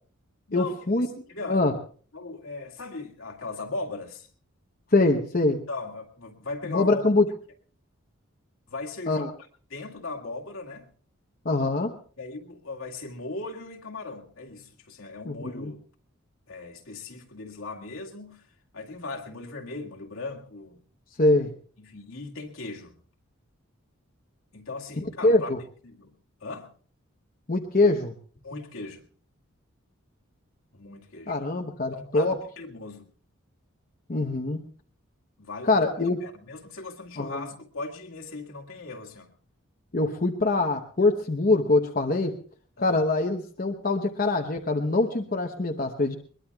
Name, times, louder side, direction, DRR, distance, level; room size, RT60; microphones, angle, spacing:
voice 1, 0.5-1.1 1.5-1.7 4.9-5.6 6.7-7.3 9.1-9.3 11.4-11.9 15.2-15.7 21.2-21.5 25.0-25.6 27.5-28.1 31.3-32.4 34.1-34.6 35.6-36.2 37.2-37.5 39.9-42.3 42.8-46.2, left 2 dB, 40° left, 2 dB, 0.9 m, -24 dB
voice 2, 1.3-1.7 2.1-4.3 5.7-7.0 8.7-9.3 9.7-10.9 12.2-15.8 16.5-18.4 18.7-20.8 21.8-23.0 24.5-25.5 25.8-26.1 26.4-26.7 28.4-29.1 30.7-31.4 31.9-33.1 35.4-35.8 36.2-39.3 42.8-43.0, left 3 dB, 75° left, 0 dB, 2.0 m, -38 dB
22.0 x 21.0 x 2.3 m, 0.43 s
head